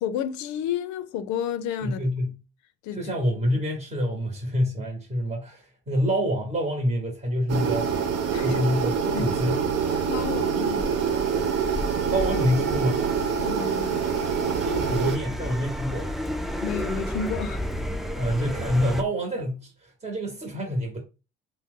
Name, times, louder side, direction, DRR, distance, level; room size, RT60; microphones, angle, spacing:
voice 1, 0.0-2.0 2.8-3.1 8.3-8.6 9.1-9.3 9.9-11.2 13.4-14.1 16.6-17.6, left 8 dB, 65° left, 0.5 m, -31 dB
voice 2, 1.8-2.3 2.9-8.0 8.4-9.6 12.1-13.1 14.6-16.2 18.1-21.0, equal, 25° right, 1.0 m, -27 dB
sound 1, 7.5-15.2, right 6 dB, 55° right, 0.6 m, -26 dB
sound 2, 10.1-19.0, equal, ahead, 0.3 m, -33 dB
2.7 x 2.1 x 3.6 m
hypercardioid pair, 65°, 31 cm